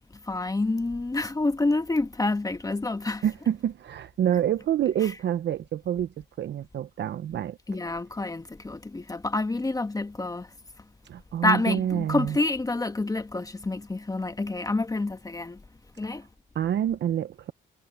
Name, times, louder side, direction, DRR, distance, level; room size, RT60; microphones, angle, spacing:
voice 1, 0.2-3.2 5.0-5.1 7.7-10.8 11.4-15.6 16.0-16.3, left 2 dB, 20° left, 1.3 m, -28 dB
voice 2, 3.2-7.6 11.0-12.4 16.5-17.5, right 10 dB, 60° right, 0.9 m, -27 dB
cardioid pair, 90°, 20 cm